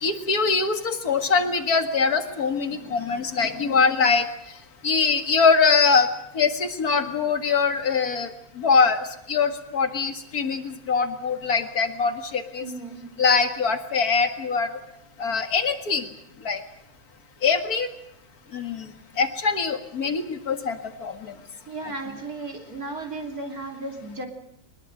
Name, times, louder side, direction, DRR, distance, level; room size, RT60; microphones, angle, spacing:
voice 1, 0.0-4.3 4.8-6.1 6.3-8.3 8.6-12.7 13.2-14.7 15.2-16.1 16.4-16.6 17.4-17.9 18.5-18.9 19.2-21.3, left 5 dB, 50° left, 7 dB, 2.3 m, -23 dB
voice 2, 12.6-13.1 21.7-24.3, right 2 dB, 50° right, 3 dB, 3.6 m, -35 dB
23.5 x 20.5 x 7.9 m, 0.79 s
omnidirectional pair, 2.1 m